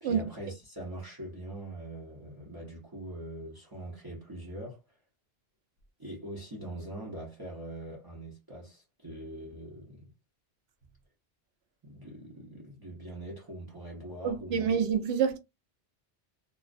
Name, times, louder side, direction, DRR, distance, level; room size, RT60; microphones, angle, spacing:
voice 1, 0.0-4.8 6.0-10.1 11.8-14.8, right 1 dB, 25° right, 0.7 m, -42 dB
voice 2, 14.2-15.4, right 7 dB, 75° right, 0.8 m, -27 dB
2.4 x 2.1 x 2.4 m
omnidirectional pair, 1.1 m